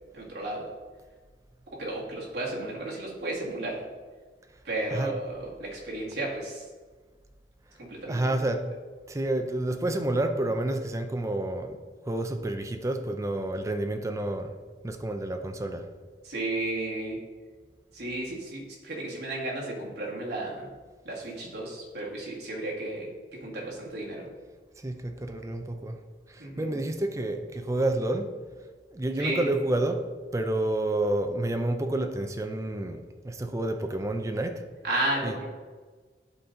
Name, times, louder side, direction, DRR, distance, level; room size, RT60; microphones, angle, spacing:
voice 1, 0.1-0.7 1.7-3.8 4.6-6.6 7.8-8.3 16.2-17.2 17.9-20.7 21.0-24.3 26.4-26.7 29.2-29.5 34.8-35.5, right 2 dB, 70° right, 1.9 m, -33 dB
voice 2, 8.1-8.7 9.1-14.6 14.8-15.9 24.8-26.0 26.3-28.4 28.9-34.7 35.2-35.3, right 1 dB, 20° right, 0.5 m, -29 dB
11.0 x 4.1 x 3.8 m
head